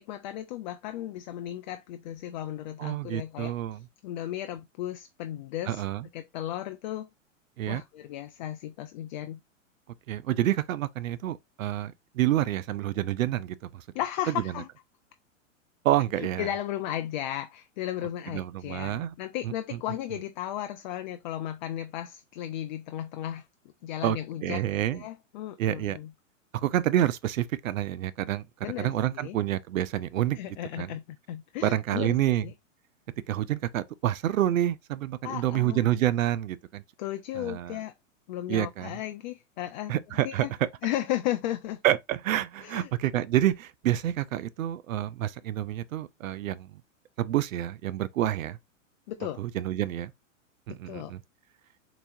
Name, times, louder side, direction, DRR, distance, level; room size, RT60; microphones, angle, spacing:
voice 1, 0.0-3.5 4.0-5.8 6.1-7.1 7.7-9.4 13.9-14.7 16.2-23.5 23.8-26.1 28.6-29.4 30.4-32.5 35.2-35.8 37.0-37.9 38.3-39.9 40.2-40.5 40.8-41.8 42.6-42.9 49.1-49.4 50.9-51.1, left 12 dB, 40° left, 0.4 m, -35 dB
voice 2, 2.8-3.8 5.7-6.1 7.6-7.8 10.1-13.8 15.8-16.5 18.3-19.1 24.0-24.2 24.4-25.0 25.6-26.0 26.5-28.4 28.8-30.4 30.8-30.9 31.6-32.5 33.3-36.8 37.4-37.8 38.5-39.0 39.9-40.5 41.8-46.7 47.2-48.6 49.4-50.1 50.7-51.2, right 13 dB, 80° right, 0.5 m, -28 dB
4.5 x 3.0 x 2.5 m
hypercardioid pair, 120°, 39 cm